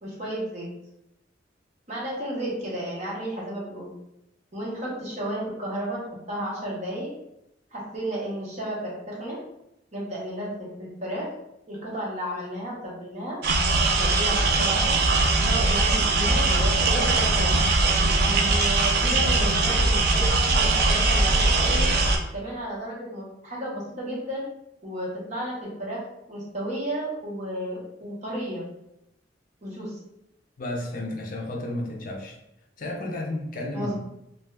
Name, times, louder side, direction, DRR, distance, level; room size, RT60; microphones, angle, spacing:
voice 1, 0.0-0.7 1.9-3.9 4.5-6.0 6.3-7.1 7.7-9.4 9.9-11.3 11.7-13.4 14.0-15.0 15.4-17.5 18.2-21.9 22.3-24.4 24.8-26.0 26.3-28.6 29.6-29.9 33.7-34.0, right 1 dB, 40° right, -5 dB, 0.9 m, -32 dB
sound 1, 13.4-22.2, right 3 dB, 60° right, 0.4 m, -21 dB
voice 2, 30.6-32.4 32.8-34.0, left 1 dB, 50° left, 1 dB, 0.5 m, -32 dB
2.6 x 2.3 x 3.3 m, 0.83 s
head